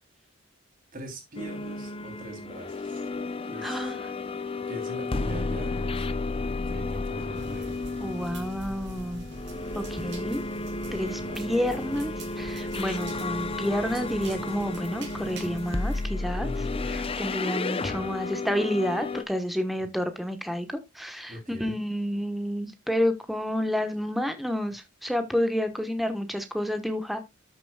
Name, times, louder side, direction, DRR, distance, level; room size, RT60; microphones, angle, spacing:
voice 1, 0.9-3.1 3.5-3.9 4.7-6.1 6.7-7.7 10.0-10.2 11.0-11.4 12.8-13.2 16.4-17.0 21.3-21.8, right 1 dB, 40° right, 3.3 m, -42 dB
sound 1, 1.4-19.2, left 3 dB, 25° left, 0.6 m, -32 dB
voice 2, 3.6-4.0 8.0-9.3 9.7-10.4 10.9-16.5 16.9-27.2, equal, ahead, 1.1 m, -30 dB
sound 2, 7.3-16.1, right 2 dB, 55° right, 2.7 m, -42 dB
13.0 x 6.9 x 2.3 m
head